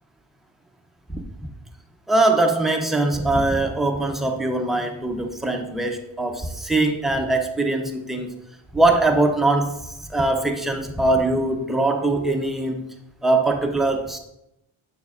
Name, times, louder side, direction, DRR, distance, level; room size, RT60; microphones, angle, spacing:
voice 1, 2.1-8.3 8.7-12.9 13.2-14.2, right 2 dB, ahead, 2 dB, 0.3 m, -22 dB
7.0 x 6.6 x 2.3 m, 0.85 s
wide cardioid pair, 175°, 49 cm